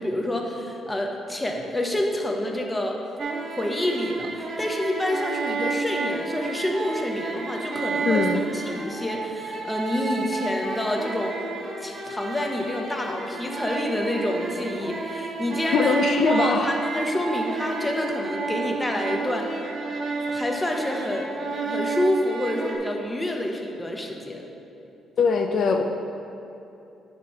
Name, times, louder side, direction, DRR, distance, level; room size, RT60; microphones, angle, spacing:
voice 1, 0.0-3.0 3.6-8.2 8.5-11.4 11.8-15.9 16.3-19.5 20.3-21.3 21.6-24.4, left 1 dB, 15° left, 2 dB, 0.9 m, -28 dB
sound 1, 3.2-22.7, right 4 dB, 55° right, 1.1 m, -31 dB
voice 2, 8.1-8.4 15.7-16.8 25.2-25.8, left 5 dB, 60° left, 4 dB, 0.4 m, -22 dB
9.5 x 3.2 x 5.7 m, 2.8 s
cardioid pair, 90°, 0 cm